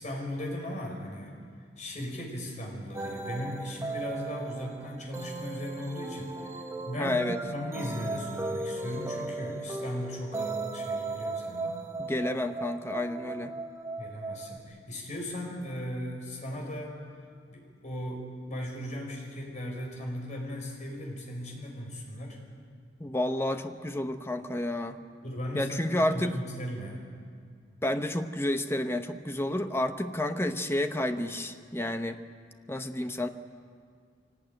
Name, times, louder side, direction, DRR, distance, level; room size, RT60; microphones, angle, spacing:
voice 1, 0.0-1.4 1.8-7.2 7.5-11.7 14.0-17.0 17.5-22.4 25.2-27.0, left 1 dB, 40° left, 0 dB, 5.5 m, -37 dB
sound 1, 2.9-14.6, right 3 dB, 15° right, 1.6 m, -37 dB
voice 2, 7.0-7.4 12.0-13.6 23.0-25.0 25.5-26.4 27.8-32.2 32.7-33.3, left 1 dB, 15° left, 7 dB, 1.0 m, -30 dB
24.0 x 18.5 x 9.1 m, 2.1 s
head